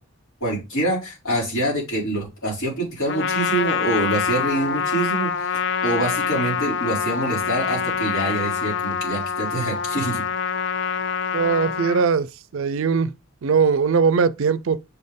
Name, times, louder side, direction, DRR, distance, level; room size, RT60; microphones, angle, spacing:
voice 1, 0.4-10.2, right 1 dB, 75° left, 4.4 m, -25 dB
Trumpet, 3.1-12.1, left 7 dB, 55° left, 0.4 m, -25 dB
voice 2, 11.3-13.1 13.4-14.8, right 5 dB, 65° right, 0.4 m, -20 dB
6.8 x 4.3 x 3.5 m
head